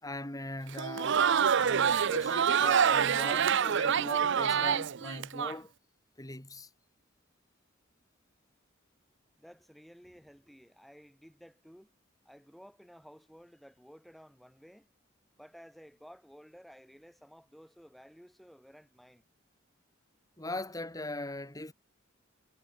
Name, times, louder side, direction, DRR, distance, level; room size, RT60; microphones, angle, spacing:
voice 1, 0.0-1.2 1.6-5.7 6.2-6.7 20.4-21.7, left 2 dB, 20° left, 3.2 m, -40 dB
Crowd, 0.7-5.5, right 7 dB, 65° right, 0.6 m, -26 dB
voice 2, 9.4-11.9 12.3-14.9 15.4-19.3, equal, ahead, 5.4 m, -55 dB
head